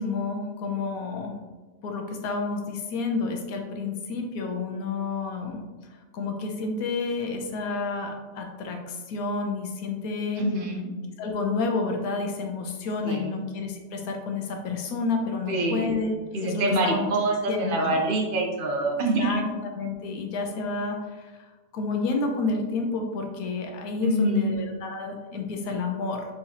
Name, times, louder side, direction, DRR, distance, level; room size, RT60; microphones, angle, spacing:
voice 1, 0.0-1.4 1.8-5.6 6.1-10.4 11.2-16.1 16.4-17.1 17.5-18.0 19.2-19.4 19.7-21.4 21.7-26.3, left 3 dB, 85° left, 3 dB, 1.1 m, -30 dB
voice 2, 10.4-10.9 13.0-13.4 15.5-16.0 16.3-19.4 24.0-24.5, right 2 dB, 50° right, 1 dB, 0.7 m, -25 dB
4.2 x 3.6 x 2.8 m, 1.3 s
omnidirectional pair, 1.5 m